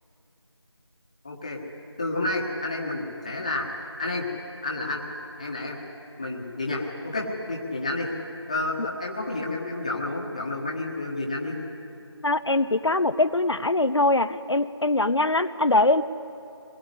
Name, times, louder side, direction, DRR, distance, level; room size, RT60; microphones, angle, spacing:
voice 1, 1.2-1.6 2.0-3.7 4.0-4.3 4.6-5.0 5.4-5.8 6.2-8.1 8.5-11.6, left 2 dB, 15° left, -1 dB, 1.5 m, -30 dB
voice 2, 12.2-16.0, left 2 dB, 75° left, 11 dB, 0.9 m, -22 dB
24.5 x 21.0 x 9.8 m, 2.8 s
figure-of-eight pair, 175°, 14 cm